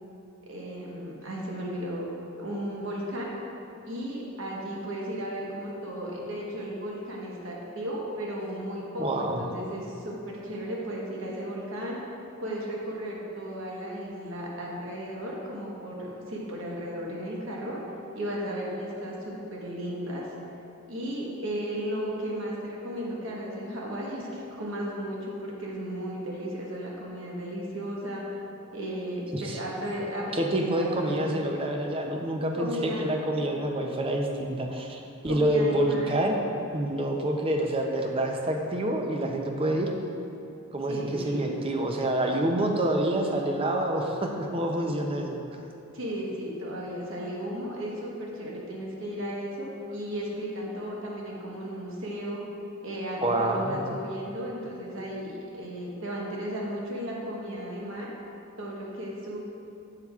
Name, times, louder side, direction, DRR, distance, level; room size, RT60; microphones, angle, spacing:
voice 1, 0.4-2.1 2.4-3.3 3.8-12.0 12.4-17.8 18.1-20.3 20.9-28.3 28.7-31.3 32.5-33.0 35.3-36.1 40.9-41.4 45.9-52.4 52.8-58.1 58.6-59.4, equal, 60° right, -3 dB, 1.1 m, -35 dB
voice 2, 9.0-9.4 29.3-29.6 30.3-36.4 36.7-39.9 40.7-45.4 53.2-53.8, right 1 dB, 25° right, 2 dB, 0.5 m, -27 dB
7.6 x 7.1 x 2.4 m, 2.8 s
head